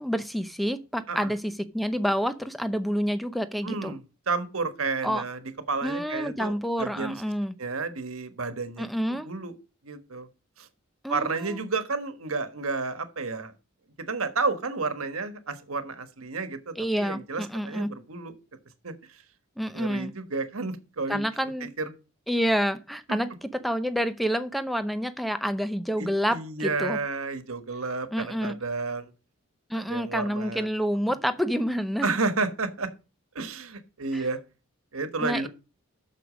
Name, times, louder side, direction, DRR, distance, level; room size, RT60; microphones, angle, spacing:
voice 1, 0.0-3.9 5.0-5.2 5.8-7.6 8.8-9.3 11.0-11.6 16.8-17.9 19.6-20.1 21.1-21.7 22.3-23.3 23.6-27.0 28.1-28.5 29.7-32.1 34.1-34.3 35.2-35.5, equal, ahead, 0.6 m, -28 dB
voice 2, 3.6-5.4 5.7-6.5 6.8-7.2 7.6-9.5 9.8-10.3 10.6-10.7 11.1-13.5 14.0-18.3 18.8-19.2 19.7-21.2 21.6-21.9 23.1-23.2 26.0-29.1 29.7-30.7 31.0-31.1 32.0-32.9 33.3-34.4 34.9-35.5, right 3 dB, 80° right, 1.4 m, -31 dB
8.3 x 6.5 x 5.1 m
head